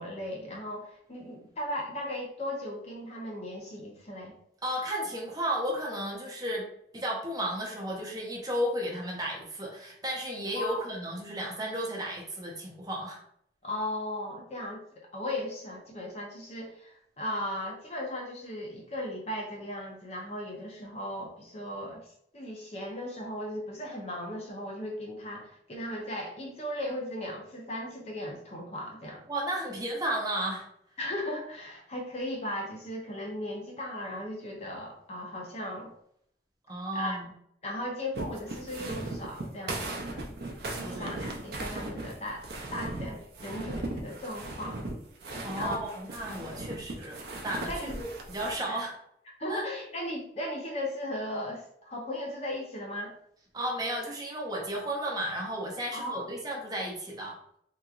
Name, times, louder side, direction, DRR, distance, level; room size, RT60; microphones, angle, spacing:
voice 1, 0.0-4.3 10.5-10.9 13.6-29.3 31.0-35.9 36.9-37.2 37.6-40.4 40.8-42.4 42.7-44.9 45.3-45.8 47.7-48.0 48.7-48.8 49.4-53.1 55.9-56.3, left 1 dB, 35° left, -1 dB, 0.7 m, -37 dB
voice 2, 4.6-6.7 6.9-13.2 29.3-30.6 36.7-37.3 40.8-41.1 45.4-48.9 49.5-49.6 53.5-57.3, right 1 dB, 20° right, -2 dB, 0.7 m, -33 dB
sound 1, 38.1-48.6, right 2 dB, 60° right, 0.6 m, -38 dB
3.5 x 3.0 x 2.4 m, 0.69 s
head